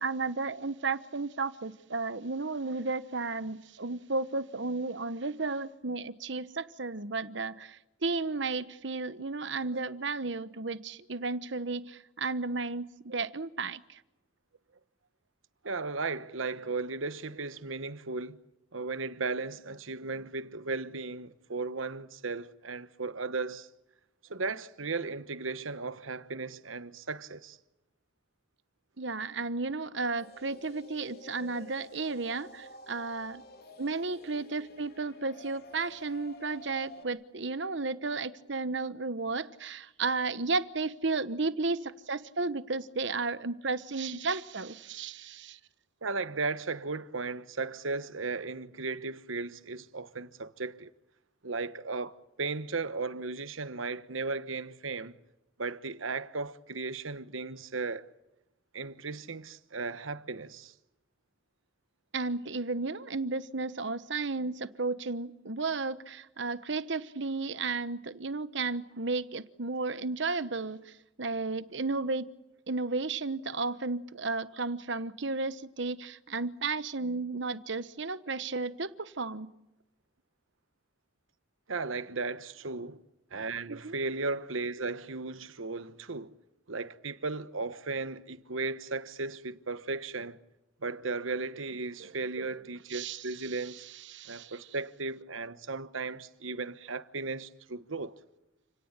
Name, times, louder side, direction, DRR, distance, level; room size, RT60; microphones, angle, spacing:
voice 1, 0.0-14.0 29.0-33.4 33.8-45.6 62.1-70.9 71.2-72.3 72.7-79.5 83.7-83.9 92.9-93.5 94.1-94.5, right 3 dB, 60° right, 1.1 m, -33 dB
voice 2, 15.6-18.4 18.7-23.7 24.3-27.6 46.0-50.9 51.4-55.2 55.6-58.1 58.7-60.7 81.7-83.0 83.3-86.3 86.7-90.4 90.8-93.9 94.3-98.1, right 3 dB, 80° right, 1.2 m, -36 dB
sound 1, 30.2-37.0, equal, 50° left, 3.4 m, -51 dB
29.5 x 18.0 x 8.9 m
head